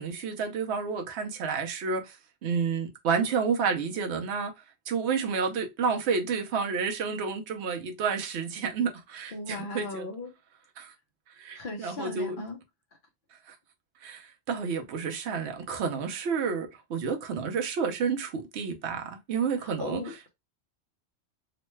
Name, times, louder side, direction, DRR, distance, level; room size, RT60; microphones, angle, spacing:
voice 1, 0.0-4.5 4.9-10.1 10.8-10.9 11.4-12.4 13.5-13.6 14.0-20.0, right 5 dB, 75° right, 0.9 m, -30 dB
voice 2, 9.3-10.3 11.5-12.6 19.8-20.3, left 2 dB, 55° left, 0.9 m, -37 dB
3.0 x 2.2 x 3.1 m
omnidirectional pair, 1.1 m